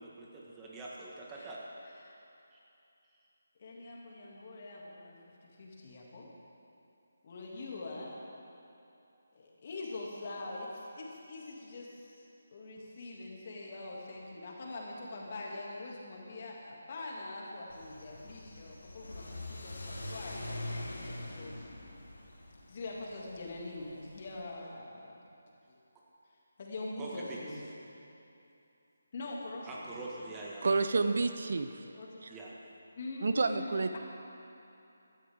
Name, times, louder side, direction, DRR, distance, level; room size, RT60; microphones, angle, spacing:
voice 1, 0.0-1.6 2.5-2.6 27.0-27.5 29.7-31.1 32.3-32.5, right 2 dB, 15° right, -4 dB, 1.8 m, -44 dB
voice 2, 3.6-6.3 7.2-8.2 9.3-12.3 12.5-21.7 22.7-25.2 25.7-25.8 26.6-27.6 29.1-30.3 31.9-32.1 33.0-34.0, left 2 dB, 40° left, -3 dB, 2.6 m, -44 dB
Car / Accelerating revving vroom, 17.7-24.4, left 1 dB, 70° left, 2.6 m, -44 dB
voice 3, 30.6-31.8 32.2-32.3 33.2-34.0, right 3 dB, 55° right, 9 dB, 0.6 m, -29 dB
17.0 x 13.0 x 3.8 m, 2.8 s
figure-of-eight pair, 150°, 0 cm